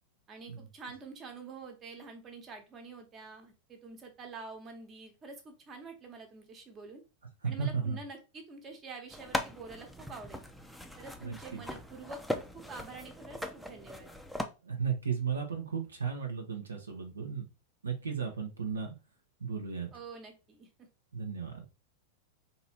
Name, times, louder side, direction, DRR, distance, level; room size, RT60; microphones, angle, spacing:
voice 1, 0.3-7.0 7.4-10.4 11.0-14.1 19.9-20.7, right 4 dB, 25° right, 4 dB, 1.2 m, -47 dB
voice 2, 7.4-8.0 11.2-11.6 14.6-17.5 17.8-18.9 19.4-19.9 21.1-21.6, right 6 dB, 75° right, 2 dB, 0.9 m, -34 dB
sound 1, 9.1-14.4, left 1 dB, ahead, 0.6 m, -39 dB
4.0 x 2.8 x 4.2 m, 0.29 s
figure-of-eight pair, 90°, 0 cm